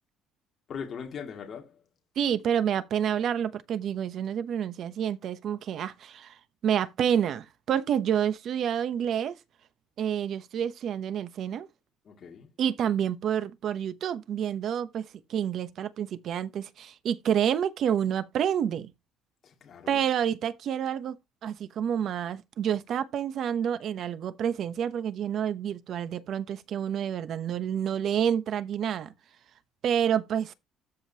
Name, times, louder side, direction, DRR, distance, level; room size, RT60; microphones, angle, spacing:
voice 1, 0.7-1.8 12.0-12.5 19.4-20.0, left 6 dB, 35° left, 2.3 m, -40 dB
voice 2, 2.2-6.4 6.6-9.3 10.0-11.7 12.6-18.9 19.9-21.2 21.4-29.1 29.8-30.5, right 9 dB, 45° right, 0.9 m, -28 dB
13.5 x 5.2 x 2.8 m
cardioid pair, 165°, 0 cm